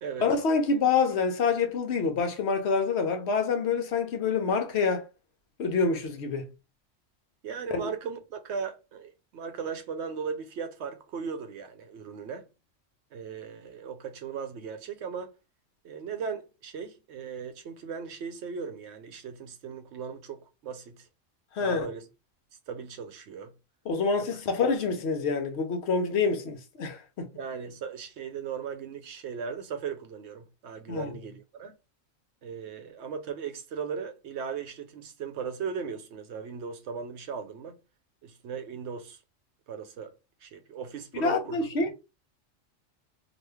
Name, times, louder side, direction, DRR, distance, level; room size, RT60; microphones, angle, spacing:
voice 1, 0.2-5.0 5.6-6.5 7.7-7.9 21.5-21.9 23.9-27.3 30.9-31.1 41.1-41.9, left 4 dB, 60° left, 0.9 m, -27 dB
voice 2, 7.4-12.5 13.1-15.3 15.8-21.1 21.6-22.0 22.7-23.5 24.3-24.4 27.3-31.7 32.4-37.8 38.2-39.2 39.7-40.1 40.4-41.7, right 6 dB, 65° right, 0.8 m, -37 dB
3.0 x 2.4 x 3.3 m
omnidirectional pair, 1.3 m